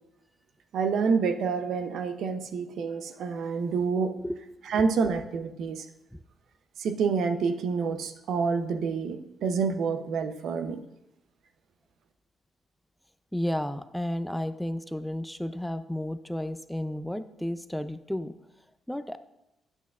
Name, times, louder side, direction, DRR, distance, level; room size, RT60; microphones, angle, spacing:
voice 1, 0.7-4.1 4.7-5.9 6.8-10.8, right 5 dB, 75° right, 7 dB, 0.6 m, -28 dB
voice 2, 13.3-18.3 18.9-19.2, left 1 dB, 5° left, 11 dB, 0.4 m, -32 dB
8.3 x 8.0 x 2.4 m, 0.87 s
supercardioid pair, 65°, 0 cm